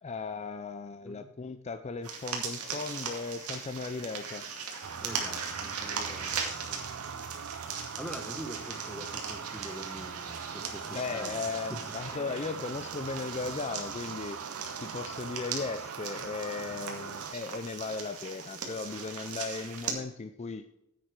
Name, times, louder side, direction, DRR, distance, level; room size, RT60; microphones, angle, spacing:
voice 1, 0.0-4.4 10.9-14.4 14.8-20.7, left 4 dB, 30° left, 0.4 m, -37 dB
sound 1, 2.0-19.9, right 6 dB, 85° right, 2.2 m, -39 dB
sound 2, 4.8-17.3, right 7 dB, 60° right, 0.5 m, -42 dB
voice 2, 5.0-7.6 8.0-11.4 11.7-11.8, equal, 5° left, 1.1 m, -44 dB
9.8 x 8.0 x 4.7 m
head